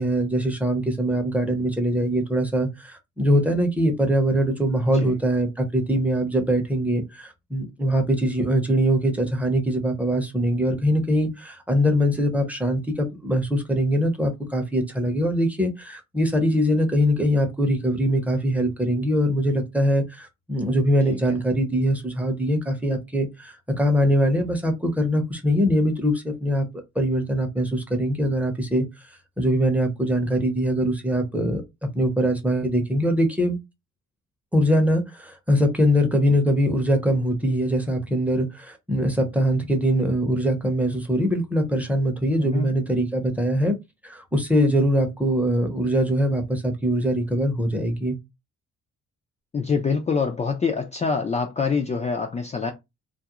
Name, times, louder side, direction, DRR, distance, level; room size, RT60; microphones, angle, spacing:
voice 1, 0.0-26.6 26.9-28.8 29.4-33.6 34.5-43.8 44.0-48.2, equal, 5° right, 0.7 m, -22 dB
voice 2, 49.5-52.7, left 5 dB, 25° left, 0.4 m, -25 dB
2.4 x 2.0 x 2.8 m
cardioid pair, 90°, 30 cm